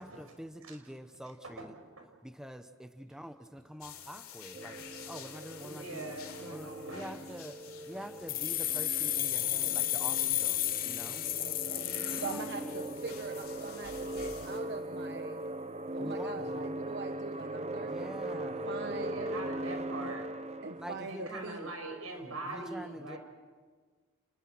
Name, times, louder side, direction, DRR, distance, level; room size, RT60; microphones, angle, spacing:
voice 1, 0.0-1.7 2.2-4.8 5.1-6.2 6.5-7.6 7.8-11.3 12.1-13.0 16.0-16.8 17.8-18.7 20.8-21.7 22.4-23.2, equal, 5° right, 9 dB, 0.9 m, -46 dB
voice 2, 1.4-2.1 5.6-7.1 8.0-8.1 11.7-12.3 18.6-20.3 21.1-23.2, right 2 dB, 85° right, 4 dB, 5.9 m, -43 dB
sound 1, 3.8-14.6, left 8 dB, 80° left, 3.8 m, -50 dB
sound 2, 4.5-21.1, right 1 dB, 30° right, 0.8 m, -40 dB
sound 3, 8.3-13.1, left 13 dB, 45° left, 1.0 m, -32 dB
voice 3, 11.4-15.4 15.9-19.4 20.0-20.2 20.6-21.7, right 4 dB, 55° right, 6 dB, 1.1 m, -43 dB
30.0 x 21.0 x 6.1 m, 1.5 s
head